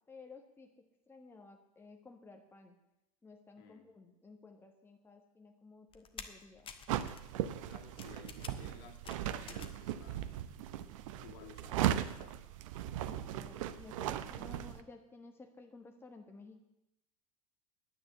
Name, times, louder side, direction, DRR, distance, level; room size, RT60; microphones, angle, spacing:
voice 1, 0.0-2.7 3.2-6.7 11.1-11.2 13.1-16.6, left 3 dB, 10° left, 3 dB, 1.4 m, -55 dB
voice 2, 3.6-3.9 7.7-10.7 11.2-12.4, left 7 dB, 55° left, 3 dB, 2.2 m, -56 dB
sound 1, 5.9-9.9 10.2-10.9 11.3-11.4, left 6 dB, 25° left, 1.3 m, -51 dB
sound 2, 6.9-14.8, right 11 dB, 60° right, 0.8 m, -38 dB
10.0 x 9.5 x 8.2 m, 0.89 s
figure-of-eight pair, 80°, 19 cm